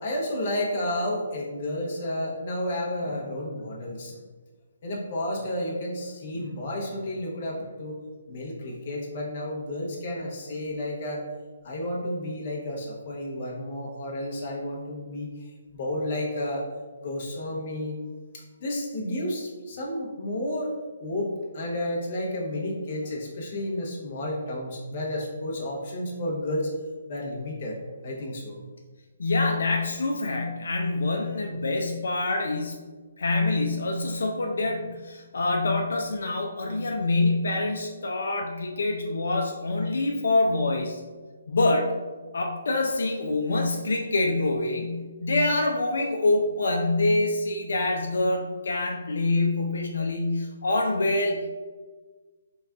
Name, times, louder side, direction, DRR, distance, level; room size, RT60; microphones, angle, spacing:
voice 1, 0.0-4.2 4.8-8.0 8.3-11.2 11.6-16.6 17.0-18.0 18.6-20.7 21.0-26.7 27.1-27.8 28.0-28.6, left 1 dB, 40° left, -3 dB, 0.8 m, -31 dB
voice 2, 29.2-32.7 33.2-41.0 41.5-41.9 42.3-51.4, left 2 dB, 75° left, 2 dB, 0.4 m, -25 dB
4.0 x 2.3 x 3.5 m, 1.4 s
hypercardioid pair, 160°, 0 cm